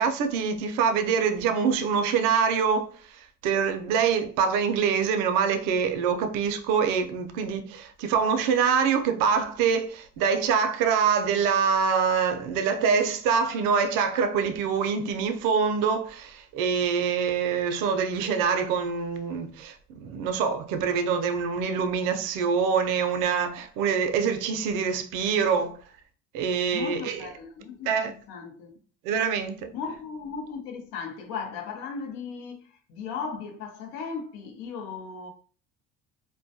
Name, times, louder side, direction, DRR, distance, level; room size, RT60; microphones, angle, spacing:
voice 1, 0.0-2.9 3.4-25.8 26.3-27.3 27.9-28.1 29.0-29.7, right 6 dB, 80° right, 0.5 m, -25 dB
voice 2, 26.7-28.7 29.7-35.3, left 5 dB, 75° left, 0.7 m, -36 dB
2.2 x 2.1 x 2.7 m
cardioid pair, 115°, 32 cm